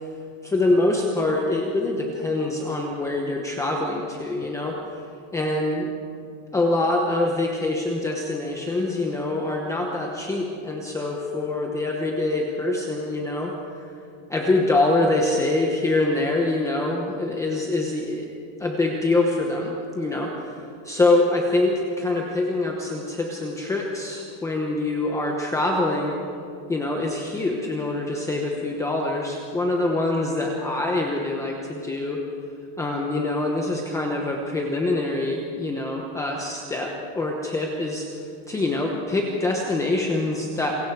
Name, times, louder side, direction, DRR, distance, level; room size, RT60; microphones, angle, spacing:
voice 1, 0.4-4.7 5.3-5.9 6.5-13.9 14.3-18.3 18.6-26.1 26.7-32.2 32.8-40.8, left 2 dB, 5° left, 0 dB, 0.9 m, -25 dB
28.0 x 23.0 x 4.7 m, 2.5 s
supercardioid pair, 175°, 46 cm